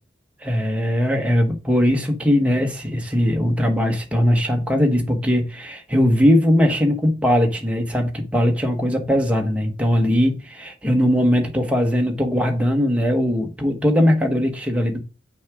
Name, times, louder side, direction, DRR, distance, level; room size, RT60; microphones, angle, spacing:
voice 1, 0.4-15.0, equal, 5° right, 1.1 m, -20 dB
6.2 x 4.8 x 3.6 m
head